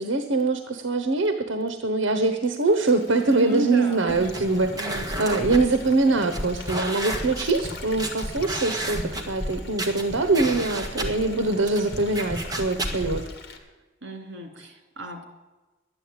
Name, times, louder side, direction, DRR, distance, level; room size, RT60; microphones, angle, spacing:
voice 1, 0.0-13.3, right 3 dB, 85° right, 8 dB, 1.1 m, -23 dB
Stream, 2.7-13.6, left 4 dB, 60° left, 1.9 m, -45 dB
voice 2, 3.2-5.3 14.0-15.2, right 3 dB, 65° right, 4 dB, 2.8 m, -33 dB
sound 1, 4.1-13.2, right 1 dB, 20° right, 1.8 m, -32 dB
12.0 x 9.9 x 8.8 m, 1.2 s
head